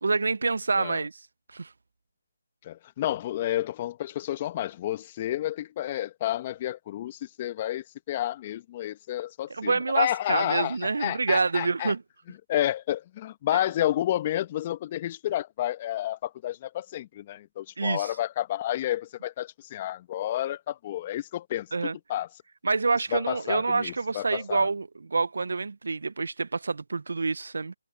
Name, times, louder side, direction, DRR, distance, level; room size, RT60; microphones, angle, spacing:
voice 1, 0.0-1.2 1.5-1.7 9.5-12.0 13.5-13.6 17.8-18.1 21.7-22.0 22.6-27.7, right 4 dB, 70° right, 0.7 m, -27 dB
voice 2, 2.6-11.9 12.5-22.3 23.1-24.7, left 13 dB, 30° left, 1.5 m, -30 dB
figure-of-eight pair, 155°, 0 cm